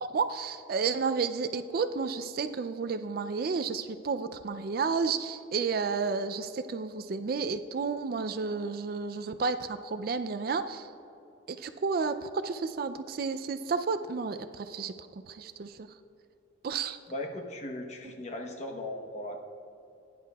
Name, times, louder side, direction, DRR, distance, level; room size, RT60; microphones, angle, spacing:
voice 1, 0.0-10.9 11.5-14.9 15.3-15.8 16.6-17.0, right 5 dB, 50° right, 10 dB, 0.3 m, -31 dB
voice 2, 17.1-19.4, left 1 dB, 35° left, 3 dB, 0.9 m, -38 dB
16.5 x 10.0 x 2.3 m, 2.7 s
head